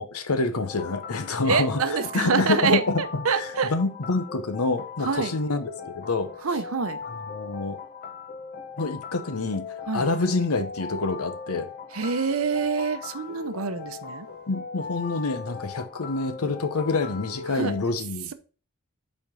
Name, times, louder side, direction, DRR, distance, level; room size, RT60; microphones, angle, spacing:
voice 1, 0.0-1.8 2.1-2.8 3.1-6.3 7.1-7.8 8.8-11.7 14.5-18.3, left 3 dB, 90° left, 0.9 m, -27 dB
sound 1, 0.7-17.8, left 5 dB, 40° left, 0.7 m, -39 dB
voice 2, 1.4-3.7 5.0-5.3 6.4-7.0 9.9-10.1 11.9-14.3 17.5-17.8, right 5 dB, 70° right, 0.7 m, -26 dB
5.9 x 4.4 x 5.5 m
head